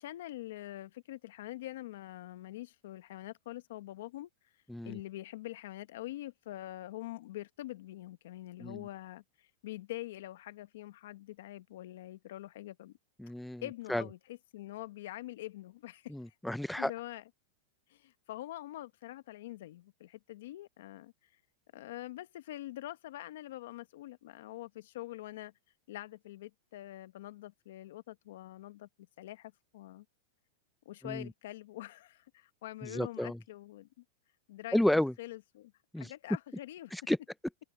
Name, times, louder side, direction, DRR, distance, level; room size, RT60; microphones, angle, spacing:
voice 1, 0.0-4.3 4.8-12.9 13.6-16.1 16.8-17.2 17.9-21.1 21.7-25.5 25.9-28.9 29.2-30.0 30.8-34.0 34.5-34.8 35.2-36.9, left 15 dB, 70° left, 1.2 m, -45 dB
voice 2, 13.2-13.6 13.9-14.0 16.1-16.9 31.0-31.3 32.8-33.4 34.7-35.1 35.9-36.1 36.9-37.2, left 1 dB, ahead, 0.6 m, -31 dB
open air
supercardioid pair, 135°, 0 cm